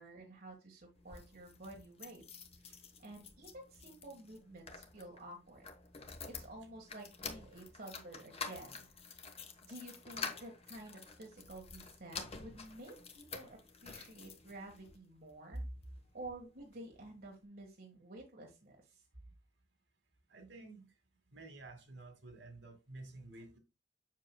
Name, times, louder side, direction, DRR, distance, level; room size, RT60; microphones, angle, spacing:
voice 1, 0.0-2.2 2.6-5.7 6.2-8.9 9.2-15.6 16.1-19.0, right 1 dB, 55° right, 1.5 m, -51 dB
sound 1, 0.9-15.0 15.6-16.4 16.7-16.8 17.0-17.1, left 5 dB, 35° left, 1.1 m, -49 dB
voice 2, 20.3-20.9 21.3-23.6, right 2 dB, 75° right, 2.2 m, -49 dB
7.4 x 6.6 x 2.2 m
head